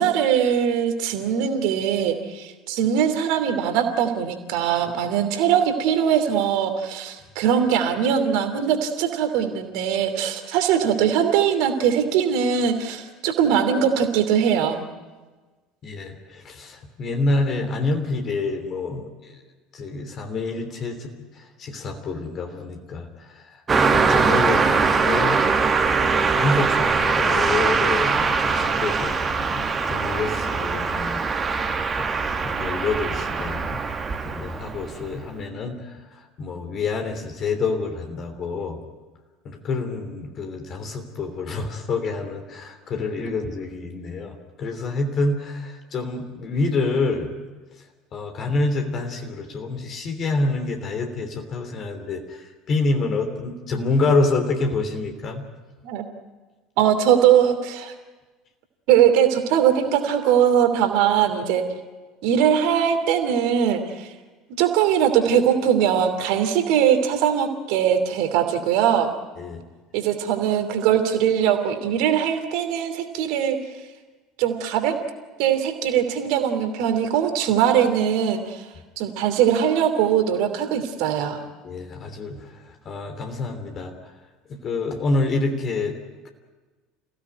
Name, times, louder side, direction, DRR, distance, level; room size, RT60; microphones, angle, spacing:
voice 1, 0.0-14.8 55.8-56.1 56.8-57.9 58.9-61.6 62.2-64.1 64.6-69.1 69.9-73.6 74.4-74.9 75.4-78.7 79.0-81.4, right 9 dB, 55° right, 7 dB, 2.9 m, -21 dB
voice 2, 15.8-19.4 19.7-25.4 26.0-31.3 32.2-33.8 34.2-38.8 39.4-47.3 48.1-55.4 69.4-69.6 81.6-82.6 82.8-84.1 84.5-86.0, left 3 dB, 40° left, 4 dB, 3.2 m, -27 dB
Car passing by, 23.7-35.1, right 4 dB, 25° right, 1.9 m, -22 dB
28.0 x 16.5 x 9.3 m, 1.3 s
figure-of-eight pair, 65°, 0 cm